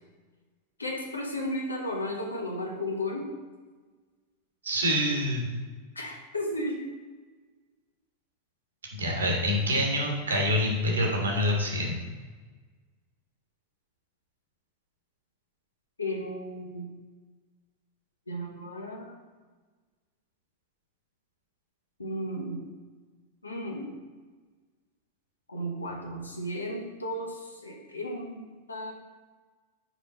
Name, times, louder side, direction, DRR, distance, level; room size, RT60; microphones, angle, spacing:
voice 1, 0.8-3.3 5.9-6.8 16.0-16.9 18.3-19.1 22.0-22.7 23.4-24.0 25.5-28.9, left 1 dB, 80° left, 1 dB, 1.1 m, -34 dB
voice 2, 4.6-5.5 8.9-12.0, equal, 70° right, 0 dB, 1.4 m, -26 dB
6.2 x 5.0 x 3.8 m, 1.4 s
figure-of-eight pair, 90°, 0 cm